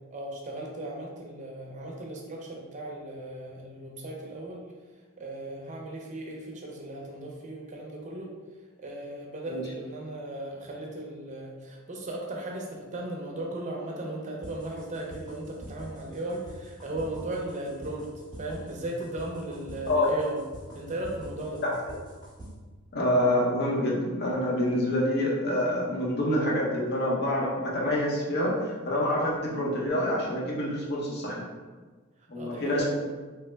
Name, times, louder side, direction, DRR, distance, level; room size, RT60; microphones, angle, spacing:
voice 1, 0.1-4.6 5.2-8.3 8.8-18.1 18.4-20.4 20.7-21.6 32.4-32.8, right 1 dB, 35° right, -1 dB, 0.5 m, -36 dB
sound 1, 14.4-22.5, right 1 dB, 20° left, 0.8 m, -45 dB
voice 2, 22.9-31.4 32.3-32.8, left 1 dB, 50° left, -3 dB, 0.7 m, -27 dB
3.0 x 2.0 x 3.2 m, 1.4 s
head